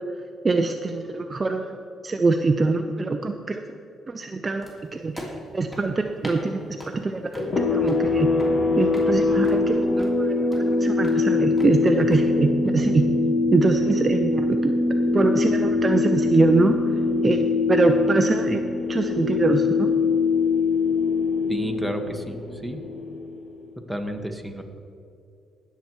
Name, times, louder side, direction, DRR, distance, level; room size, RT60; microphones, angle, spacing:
voice 1, 0.4-1.8 2.0-3.6 4.1-5.1 5.5-8.3 8.8-13.1 13.5-14.7 15.1-16.7 17.2-18.6 18.9-19.9, right 3 dB, 30° right, 5 dB, 0.6 m, -23 dB
sound 1, 4.6-12.2, equal, 15° left, 2.9 m, -42 dB
sound 2, 7.4-23.7, left 3 dB, 50° left, 1.8 m, -23 dB
voice 2, 21.5-22.8 23.9-24.6, right 1 dB, ahead, 3 dB, 1.4 m, -31 dB
19.0 x 7.0 x 4.7 m, 2.5 s
cardioid pair, 90°, 0 cm